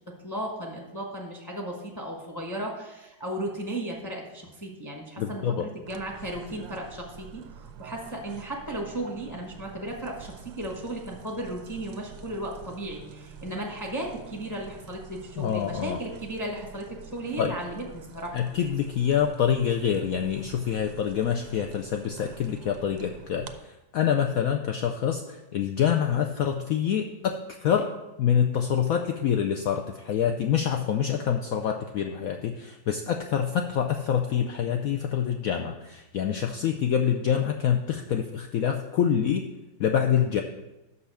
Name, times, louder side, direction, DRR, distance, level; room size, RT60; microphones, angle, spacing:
voice 1, 0.2-18.4, right 1 dB, 15° left, 0 dB, 0.8 m, -35 dB
voice 2, 5.2-5.7 15.4-16.0 17.4-17.5 18.3-27.9 28.2-39.4 39.8-40.4, left 8 dB, 90° left, 4 dB, 0.7 m, -26 dB
sound 1, 5.9-23.6, right 7 dB, 85° right, 1.3 m, -47 dB
6.3 x 5.6 x 6.7 m, 1.0 s
omnidirectional pair, 2.0 m